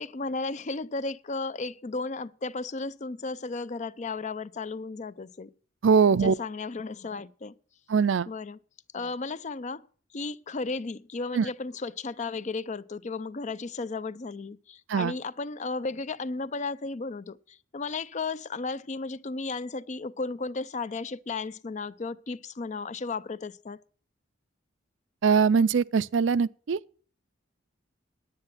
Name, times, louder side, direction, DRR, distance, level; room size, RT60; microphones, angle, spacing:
voice 1, 0.0-5.5 6.1-7.6 8.3-8.6 8.9-9.9 10.1-23.8, left 3 dB, 40° left, 0.5 m, -34 dB
voice 2, 5.8-6.3 7.9-8.3 11.3-11.5 14.9-15.1 25.2-26.8, right 5 dB, 70° right, 0.4 m, -22 dB
10.0 x 9.6 x 5.7 m
head